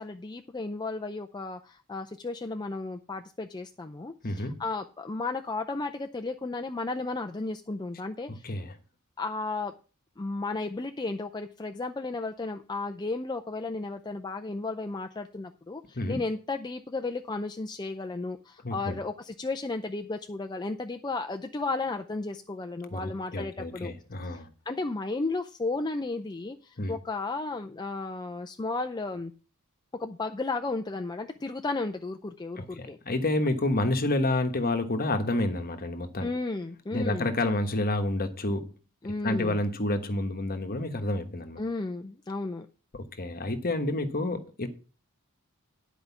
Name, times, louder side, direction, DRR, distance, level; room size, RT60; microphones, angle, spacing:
voice 1, 0.0-8.6 9.2-9.8 10.2-23.9 24.2-29.3 30.0-33.0 36.2-37.3 39.0-39.6 41.6-42.7, left 3 dB, 20° left, 0.5 m, -34 dB
voice 2, 4.2-4.6 8.4-8.7 15.9-16.2 18.6-19.0 22.9-24.5 26.8-26.9 32.6-36.3 36.9-38.7 39.2-41.6 42.9-44.7, left 2 dB, 40° left, 1.3 m, -29 dB
10.5 x 5.0 x 7.0 m
head